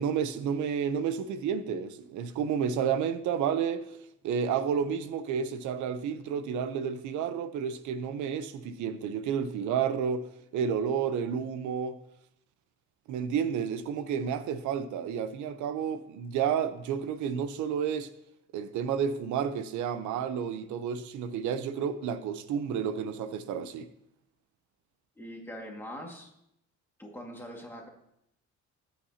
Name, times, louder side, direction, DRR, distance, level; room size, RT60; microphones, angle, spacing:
voice 1, 0.0-4.0 4.2-10.3 10.5-12.0 13.1-18.1 18.5-23.9, right 7 dB, 90° right, 0.8 m, -31 dB
voice 2, 25.2-26.3 27.0-27.9, equal, 10° left, 1.9 m, -42 dB
19.5 x 8.5 x 2.8 m
cardioid pair, 160°, 29 cm